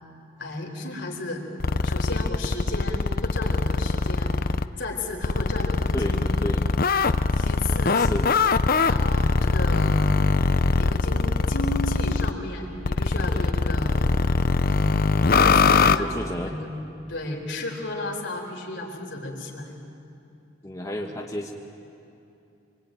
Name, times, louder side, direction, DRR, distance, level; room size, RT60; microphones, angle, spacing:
voice 1, 0.4-1.4 1.8-4.3 4.8-6.4 7.3-8.0 8.9-10.1 10.8-14.1 14.6-16.8 17.1-19.8, left 2 dB, 65° left, 1 dB, 4.2 m, -34 dB
sound 1, 1.6-4.7 5.2-12.3 12.8-16.0, left 4 dB, 45° left, 0.6 m, -22 dB
voice 2, 5.9-6.7 7.9-8.3 15.8-16.5 20.6-21.5, left 1 dB, 15° left, 0 dB, 1.3 m, -31 dB
26.5 x 23.5 x 9.3 m, 2.7 s
head